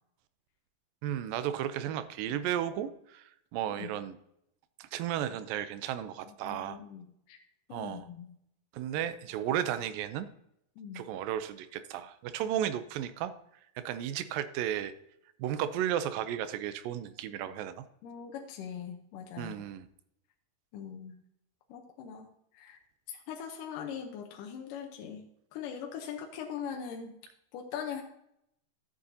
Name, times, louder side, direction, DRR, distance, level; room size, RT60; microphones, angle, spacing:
voice 1, 1.0-4.2 4.8-6.8 7.7-8.1 8.7-10.3 10.9-13.3 13.8-14.9 15.4-17.9 19.4-19.9, right 10 dB, 90° right, 12 dB, 2.4 m, -34 dB
voice 2, 6.4-7.4 7.7-8.4 10.8-11.1 18.0-19.6 20.7-21.2 21.7-22.3 22.5-22.8 23.1-25.3 25.5-27.2 27.5-28.0, left 7 dB, 80° left, 3 dB, 2.4 m, -41 dB
13.5 x 7.7 x 2.7 m, 0.76 s
omnidirectional pair, 3.9 m